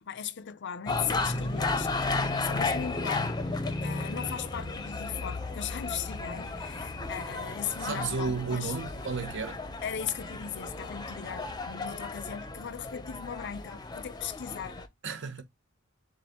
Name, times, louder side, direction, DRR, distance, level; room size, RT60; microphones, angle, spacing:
voice 1, 0.0-3.4 3.8-8.7 9.8-14.9, left 8 dB, 60° left, 0.5 m, -38 dB
sound 1, 0.9-14.9, left 3 dB, 20° left, 0.7 m, -34 dB
sound 2, 1.0-11.9, right 3 dB, 40° right, 0.6 m, -51 dB
voice 2, 7.8-9.6 15.0-15.4, right 4 dB, 60° right, 1.2 m, -32 dB
7.1 x 2.5 x 2.9 m
head